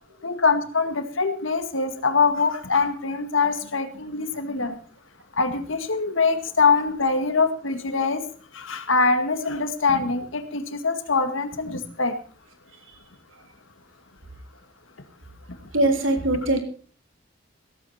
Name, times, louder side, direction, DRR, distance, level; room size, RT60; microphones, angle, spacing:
voice 1, 0.2-4.8 5.4-8.3 8.5-12.1, left 4 dB, 80° left, 8 dB, 2.0 m, -23 dB
voice 2, 15.7-16.6, right 1 dB, 85° right, 4 dB, 3.5 m, -21 dB
16.0 x 14.5 x 4.3 m, 0.41 s
head